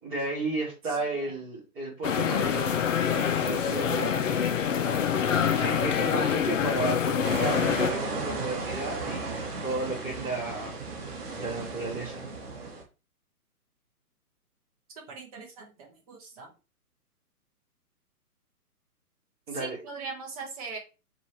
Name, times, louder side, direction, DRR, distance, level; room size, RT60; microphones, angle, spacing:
voice 1, 0.0-2.8 3.0-4.5 5.4-10.8 11.3-12.2 19.5-19.8, right 2 dB, 5° right, -9 dB, 0.5 m, -33 dB
voice 2, 0.8-1.3 15.1-16.5 19.5-20.8, right 4 dB, 25° right, 0 dB, 1.0 m, -41 dB
sound 1, 2.0-7.9, left 8 dB, 55° left, 0.6 m, -26 dB
Ocean waves mono, 7.2-12.8, right 3 dB, 40° right, 1.4 m, -34 dB
4.6 x 3.0 x 3.1 m, 0.31 s
hypercardioid pair, 145°, 45 cm